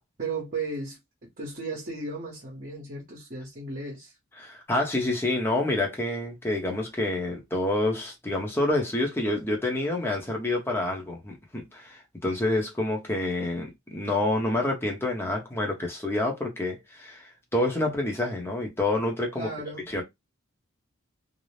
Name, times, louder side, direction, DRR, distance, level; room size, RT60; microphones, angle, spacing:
voice 1, 0.2-1.0 1.4-4.2 19.3-19.8, right 3 dB, 40° right, 0.8 m, -35 dB
voice 2, 4.4-19.5 19.9-20.0, left 2 dB, 10° left, 0.7 m, -28 dB
2.6 x 2.0 x 3.1 m
head